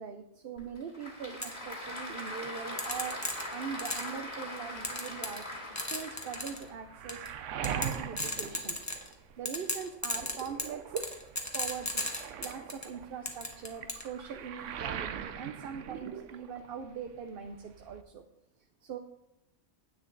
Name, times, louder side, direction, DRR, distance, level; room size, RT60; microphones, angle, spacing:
voice 1, 0.0-3.2 3.5-5.4 5.8-7.2 7.6-8.8 9.4-10.8 11.5-12.1 12.4-18.2 18.8-19.0, right 6 dB, 55° right, 5 dB, 0.8 m, -41 dB
Applause / Crowd, 0.6-6.7, left 1 dB, 35° left, 2.2 m, -41 dB
sound 1, 1.4-1.5 2.8-4.2 4.8-5.5 5.8-6.6 7.1-7.3 7.6-9.1 9.4-12.9 13.3-14.1, left 1 dB, 15° left, 1.1 m, -35 dB
Waves surf, 6.3-9.5 9.9-16.8 17.1-18.0, right 8 dB, 80° right, 1.0 m, -41 dB
9.7 x 8.7 x 3.9 m, 0.84 s
omnidirectional pair, 1.3 m